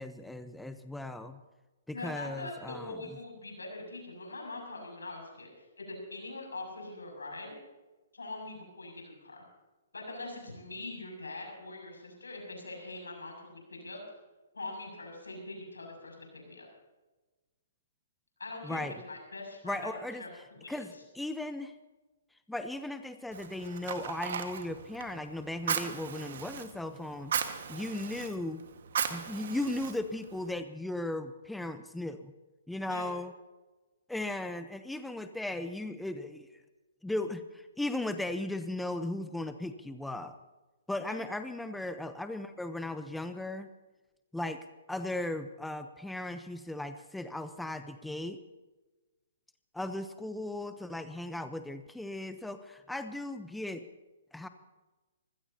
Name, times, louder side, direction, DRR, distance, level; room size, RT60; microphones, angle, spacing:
voice 1, 0.0-1.4 1.9-3.0 18.6-18.9 19.6-21.7 22.5-28.6 29.1-32.3 32.7-33.3 34.1-36.6 37.0-40.3 40.9-43.7 44.3-48.4 49.7-53.8 54.3-54.5, left 1 dB, 5° left, 9 dB, 0.7 m, -37 dB
voice 2, 1.9-7.5 8.1-9.4 9.9-14.0 14.5-16.7 18.4-21.0 32.9-33.1 41.0-41.2, left 2 dB, 90° left, 1 dB, 6.8 m, -43 dB
Fire, 23.3-30.5, right 7 dB, 60° right, 1.6 m, -37 dB
24.5 x 16.5 x 2.9 m, 1.2 s
hypercardioid pair, 130°, 0 cm